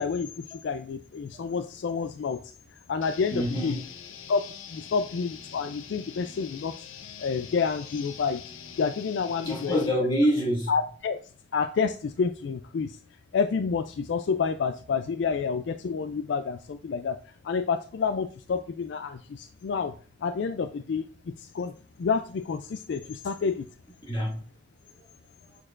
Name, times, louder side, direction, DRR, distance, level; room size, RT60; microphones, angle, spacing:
voice 1, 0.0-2.4 2.9-3.8 4.3-6.8 7.2-8.4 8.8-9.8 10.7-11.2 11.5-13.0 13.3-19.9 20.2-23.7, left 5 dB, 60° left, 0.3 m, -29 dB
sound 1, 3.0-9.9, left 8 dB, 90° left, 0.7 m, -44 dB
voice 2, 3.3-3.8 9.4-10.7 24.1-24.4 25.0-25.1, equal, 25° left, 1.9 m, -26 dB
6.6 x 6.5 x 2.4 m
head